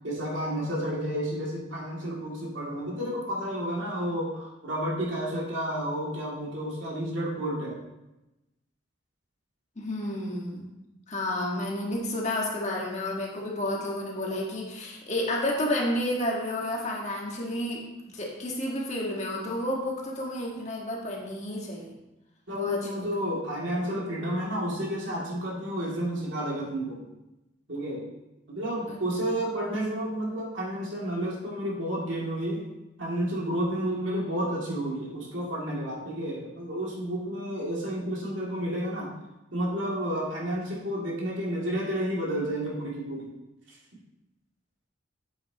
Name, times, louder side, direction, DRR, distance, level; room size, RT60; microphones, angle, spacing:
voice 1, 0.0-7.8 22.5-27.1 27.7-28.1 28.5-32.7 33.0-39.1 39.5-43.3 43.7-43.8, equal, 80° right, -4 dB, 2.5 m, -31 dB
voice 2, 9.7-10.7 11.1-22.0 22.5-23.1 28.9-29.0, left 1 dB, 40° left, -2 dB, 1.5 m, -31 dB
8.4 x 8.0 x 2.9 m, 0.96 s
head